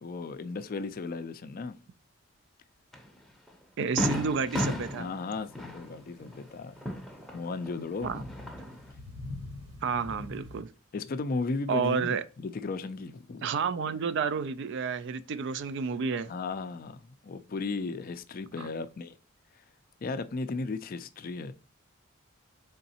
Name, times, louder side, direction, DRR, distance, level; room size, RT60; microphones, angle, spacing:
voice 1, 0.0-1.8 5.0-6.8 7.3-8.1 10.9-13.5 16.3-19.2 20.0-21.5, left 3 dB, 40° left, 0.4 m, -35 dB
Fireworks, 2.9-3.1 3.5-3.6 4.0-7.7 8.1-8.9, left 1 dB, ahead, 0.6 m, -34 dB
voice 2, 3.8-5.1 8.0-8.2 9.8-10.7 11.7-12.2 13.4-16.3 18.6-18.7, right 6 dB, 55° right, 0.3 m, -30 dB
sound 1, 4.2-10.6, left 2 dB, 85° right, 2.3 m, -46 dB
3.9 x 3.5 x 2.7 m
head